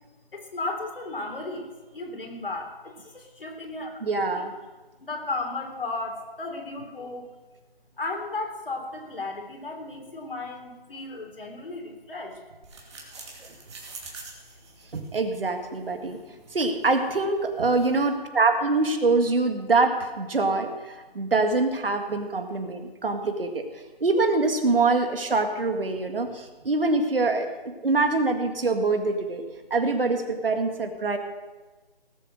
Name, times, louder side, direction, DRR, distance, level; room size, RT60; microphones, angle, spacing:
voice 1, 0.3-4.4 5.0-7.3 8.0-12.4, left 2 dB, 65° left, 3 dB, 3.4 m, -35 dB
voice 2, 4.0-4.5 14.9-16.2 16.5-23.7 24.0-27.5 27.8-29.4 29.7-31.2, right 3 dB, 65° right, 6 dB, 2.0 m, -24 dB
sound 1, 12.6-18.2, right 3 dB, 30° right, 2.5 m, -47 dB
18.5 x 7.6 x 6.4 m, 1.2 s
figure-of-eight pair, 160°, 30 cm